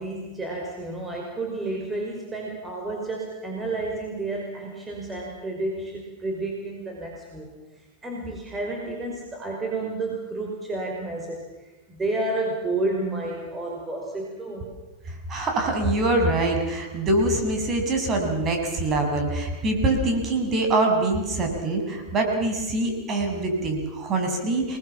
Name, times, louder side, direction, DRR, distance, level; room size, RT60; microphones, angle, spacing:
voice 1, 0.0-14.7, right 2 dB, 15° right, 0 dB, 5.4 m, -31 dB
voice 2, 15.3-24.8, right 2 dB, 35° right, 3 dB, 7.3 m, -24 dB
29.0 x 20.5 x 7.3 m, 1.1 s
hypercardioid pair, 90°, 0 cm